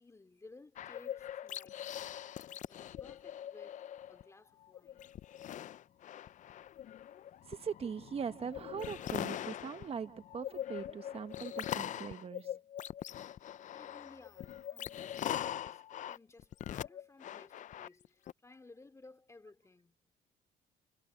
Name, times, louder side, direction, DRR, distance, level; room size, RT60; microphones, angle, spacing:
voice 1, 0.0-2.2 2.7-5.2 13.7-20.1, left 3 dB, 15° left, 2.7 m, -58 dB
sound 1, 0.8-4.2 4.6-18.3, left 11 dB, 45° left, 0.5 m, -42 dB
voice 2, 7.5-12.6, right 6 dB, 35° right, 1.2 m, -41 dB
cardioid pair, 110°, 17 cm